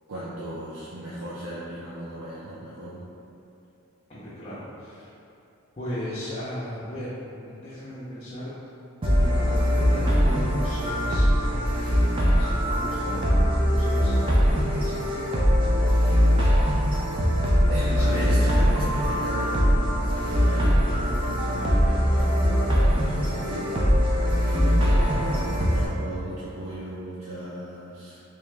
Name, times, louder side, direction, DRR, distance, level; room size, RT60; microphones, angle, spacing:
voice 1, 0.1-3.1 17.7-28.2, right 1 dB, 90° right, -9 dB, 0.5 m, -36 dB
voice 2, 4.1-5.1 5.8-8.5 9.0-12.1 12.4-16.9 17.9-19.1, equal, 30° left, -11 dB, 0.5 m, -37 dB
sound 1, 9.0-25.9, equal, 25° right, 0.4 m, -22 dB
3.4 x 2.8 x 3.2 m, 2.8 s
head